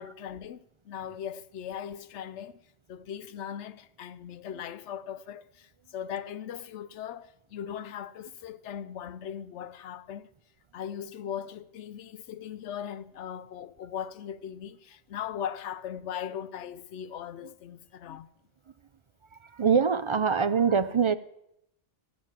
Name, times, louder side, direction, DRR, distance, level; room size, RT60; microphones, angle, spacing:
voice 1, 0.0-2.6 2.9-10.3 10.7-18.3, left 9 dB, 80° left, 1.0 m, -39 dB
voice 2, 19.5-21.2, right 6 dB, 45° right, 0.4 m, -23 dB
14.0 x 8.9 x 7.3 m
omnidirectional pair, 1.2 m